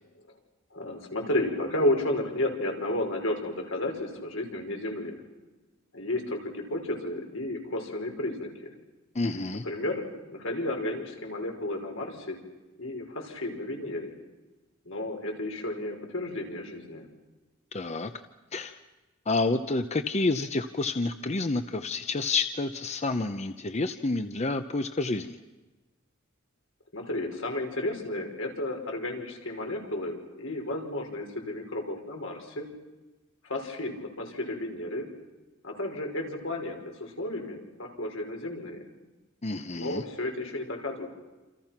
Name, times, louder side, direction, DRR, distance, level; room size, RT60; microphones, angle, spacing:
voice 1, 0.7-5.2 5.9-8.7 9.6-12.4 12.8-14.2 14.9-17.1 26.9-32.7 33.4-35.1 35.6-38.9 39.7-41.1, left 1 dB, 80° left, 2 dB, 5.5 m, -32 dB
voice 2, 9.1-9.6 17.7-18.1 18.5-18.8 19.3-25.4 39.4-40.0, left 3 dB, 35° left, 9 dB, 0.8 m, -29 dB
28.0 x 28.0 x 6.0 m, 1.1 s
head